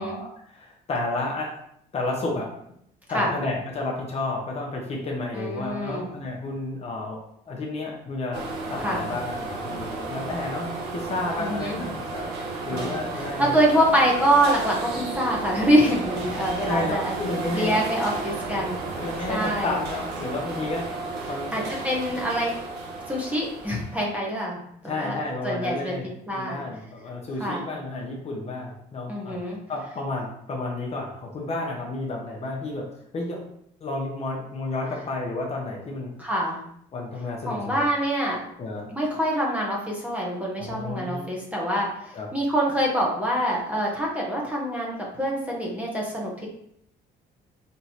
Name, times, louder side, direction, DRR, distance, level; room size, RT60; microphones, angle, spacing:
voice 1, 0.0-1.6 1.9-2.5 3.1-7.2 7.5-8.4 8.7-12.3 12.7-13.5 16.7-17.9 18.9-20.9 21.3-21.6 24.8-26.0 26.3-32.9 33.1-33.4 33.8-36.1 36.9-37.8 38.6-38.9 40.6-41.4 42.1-42.3, left 2 dB, 40° left, -1 dB, 0.9 m, -31 dB
voice 2, 5.3-6.1 8.8-9.0 11.4-11.8 12.7-17.1 17.5-18.9 19.3-19.8 21.5-22.5 23.1-25.2 25.4-26.0 26.3-26.6 27.4-27.6 29.1-29.6 36.2-36.6 37.5-38.4 38.9-46.5, right 1 dB, 10° right, -3 dB, 1.1 m, -25 dB
sound 1, 8.3-24.2, right 3 dB, 80° right, 1.0 m, -33 dB
4.3 x 3.0 x 2.9 m, 0.71 s
cardioid pair, 110°, 17 cm